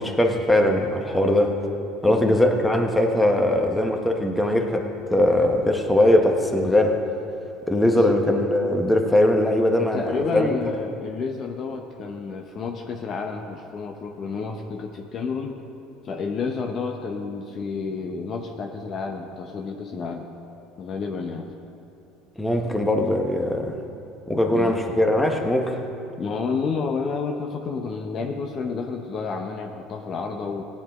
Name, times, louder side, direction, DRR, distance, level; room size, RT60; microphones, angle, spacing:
voice 1, 0.0-1.6 2.0-7.0 7.7-10.6 22.4-23.8 24.3-25.8, left 1 dB, 10° left, 3 dB, 1.3 m, -21 dB
voice 2, 2.1-2.4 7.8-8.0 9.9-15.6 16.0-20.3 20.8-21.5 24.5-24.8 26.2-30.6, left 5 dB, 45° left, 4 dB, 0.8 m, -30 dB
16.0 x 9.8 x 3.7 m, 2.7 s
supercardioid pair, 90°, 0 cm